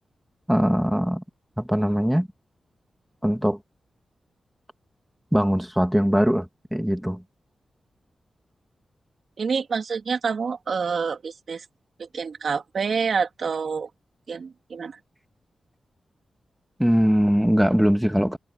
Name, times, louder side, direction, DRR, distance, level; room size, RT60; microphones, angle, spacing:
voice 1, 0.5-1.2 1.6-2.3 3.2-3.6 5.3-7.2 16.8-18.4, equal, ahead, 1.9 m, -21 dB
voice 2, 9.4-11.6 12.0-13.9 14.3-15.0, right 5 dB, 60° right, 3.3 m, -27 dB
wide cardioid pair, 145°, 0 cm